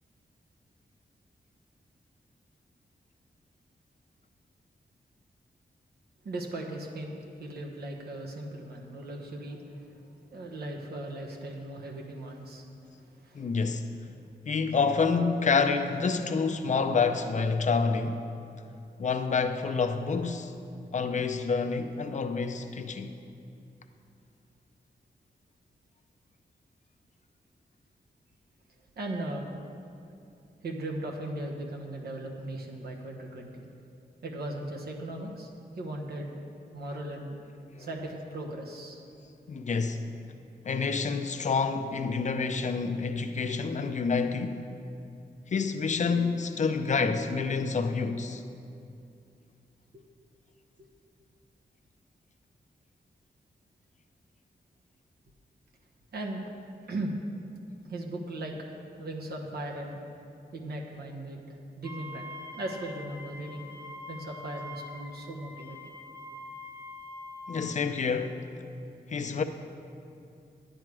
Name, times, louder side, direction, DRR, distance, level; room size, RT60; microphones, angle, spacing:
voice 1, 6.2-9.9 10.3-12.7 12.9-13.5 29.0-29.5 30.6-33.6 34.2-35.5 35.8-36.4 36.7-37.4 37.8-39.0 49.9-50.0 56.1-56.4 56.9-57.1 57.9-58.5 59.0-60.0 60.5-62.2 62.5-63.7 64.1-65.8, right 1 dB, 70° right, 1.2 m, -38 dB
voice 2, 13.3-13.9 14.5-18.2 19.0-20.5 20.9-23.1 37.7-37.9 39.5-40.0 40.6-44.6 45.5-48.4 67.5-68.4 69.1-69.4, left 5 dB, 45° left, 0.6 m, -28 dB
Wind instrument woodwind instrument, 61.8-67.8, left 2 dB, 15° right, 0.8 m, -44 dB
10.5 x 9.1 x 4.8 m
wide cardioid pair, 155°, 17 cm